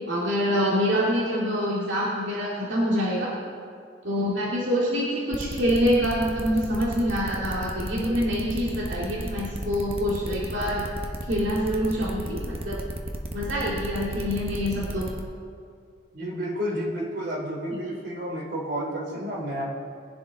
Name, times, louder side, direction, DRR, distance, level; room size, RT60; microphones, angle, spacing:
voice 1, 0.1-3.3 4.0-10.9 11.3-12.8 13.3-15.1, equal, 70° right, -6 dB, 2.1 m, -26 dB
sound 1, 5.3-15.2, right 1 dB, 30° right, 1.0 m, -34 dB
voice 2, 16.1-19.6, equal, 55° right, -2 dB, 2.9 m, -31 dB
21.0 x 10.5 x 3.9 m, 2.3 s
head